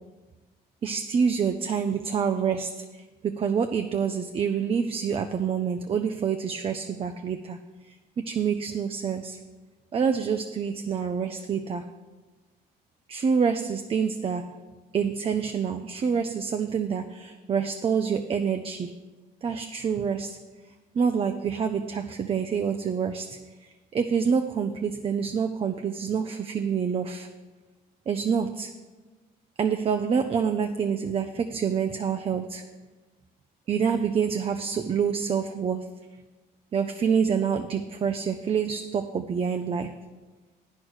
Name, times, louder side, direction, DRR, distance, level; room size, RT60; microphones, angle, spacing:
voice 1, 0.8-7.6 7.9-9.4 9.9-11.9 13.1-14.5 14.9-18.9 19.4-20.4 20.9-27.3 28.1-28.7 29.6-32.6 33.7-35.9 36.7-39.9, right 6 dB, 35° right, 7 dB, 0.5 m, -27 dB
9.2 x 6.3 x 6.3 m, 1.3 s
cardioid pair, 110°, 17 cm